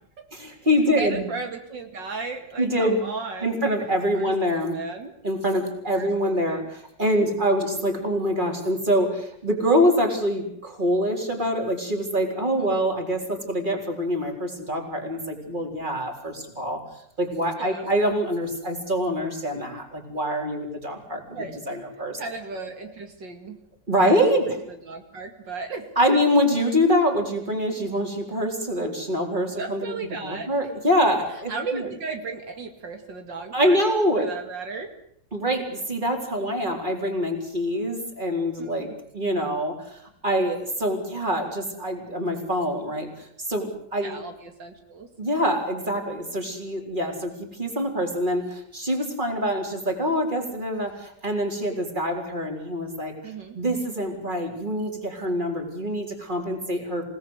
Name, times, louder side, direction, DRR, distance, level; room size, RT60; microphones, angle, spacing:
voice 1, 0.3-1.2 2.6-3.0 3.4-4.8 5.2-16.8 17.2-22.2 23.9-24.6 26.0-29.9 30.2-31.9 33.5-34.3 35.3-44.2 45.2-57.0, equal, 25° right, 3 dB, 4.4 m, -25 dB
voice 2, 1.0-3.6 4.1-5.1 5.8-6.7 7.2-7.3 12.6-12.9 17.6-17.9 21.3-21.8 22.2-23.6 24.0-24.2 24.5-26.2 29.6-30.5 31.5-33.8 34.2-34.9 38.6-39.0 44.0-45.1 53.2-53.6, right 4 dB, 80° right, 5 dB, 3.0 m, -35 dB
27.5 x 18.0 x 8.2 m, 0.71 s
omnidirectional pair, 1.9 m